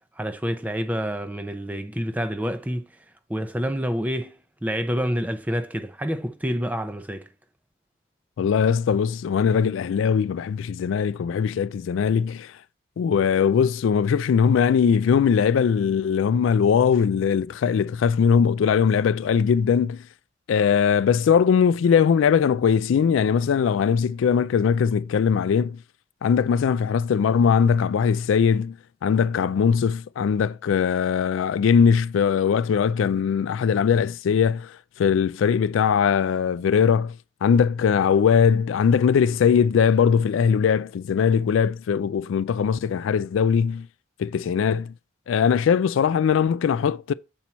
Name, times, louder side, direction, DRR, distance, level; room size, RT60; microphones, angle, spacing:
voice 1, 0.2-3.0 3.3-7.3, equal, 10° right, 0.4 m, -28 dB
voice 2, 8.4-12.5 13.0-20.1 20.5-25.8 26.2-28.8 29.0-37.2 37.4-43.9 44.2-44.9 45.3-47.1, left 7 dB, 80° left, 0.3 m, -20 dB
7.2 x 4.4 x 4.1 m
head